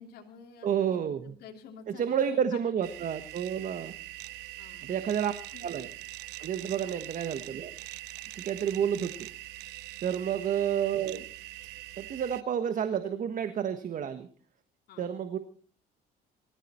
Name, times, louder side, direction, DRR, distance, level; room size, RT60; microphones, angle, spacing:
voice 1, 0.0-2.7 4.6-5.1 5.5-5.6 6.8-7.0 8.5-8.7 10.1-10.3 14.9-15.1, left 6 dB, 65° left, 1 dB, 3.3 m, -50 dB
voice 2, 0.6-1.3 1.9-3.9 4.8-5.3 5.6-5.9 6.4-7.7 8.3-9.3 10.0-11.2 12.0-14.3 15.0-15.4, right 8 dB, 50° right, 10 dB, 1.4 m, -30 dB
sound 1, 2.8-12.4, right 17 dB, 90° right, 0.8 m, -43 dB
22.5 x 14.0 x 4.4 m, 0.43 s
cardioid pair, 110°, 17 cm